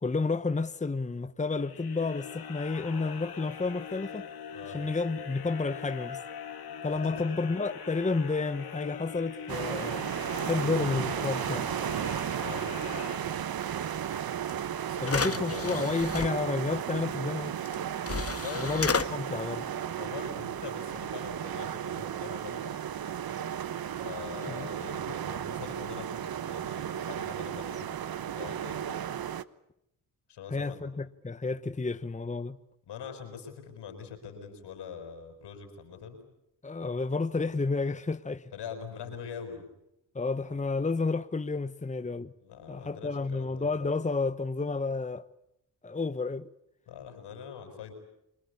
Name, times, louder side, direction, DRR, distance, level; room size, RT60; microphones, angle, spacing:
voice 1, 0.0-4.3 4.7-6.2 6.8-10.1 10.4-11.7 15.0-17.6 18.5-19.7 24.5-24.7 30.5-32.6 36.6-38.5 40.1-42.3 42.7-45.2 45.8-46.5, left 3 dB, 20° left, 1.1 m, -31 dB
sound 1, 1.5-13.8, left 7 dB, 65° left, 2.0 m, -42 dB
voice 2, 6.7-7.1 10.7-11.3 12.4-13.3 14.8-15.8 18.3-18.9 19.9-22.8 24.0-28.0 28.4-29.0 30.3-31.1 32.9-36.2 38.5-39.7 42.4-43.7 46.9-47.9, left 7 dB, 80° left, 5.9 m, -43 dB
sound 2, 9.5-29.4, right 9 dB, 60° right, 1.1 m, -34 dB
sound 3, 14.5-14.6 15.0-16.3 17.6-17.7 18.0-19.1, left 5 dB, 35° left, 1.7 m, -31 dB
28.0 x 21.5 x 8.5 m
supercardioid pair, 45°, 41 cm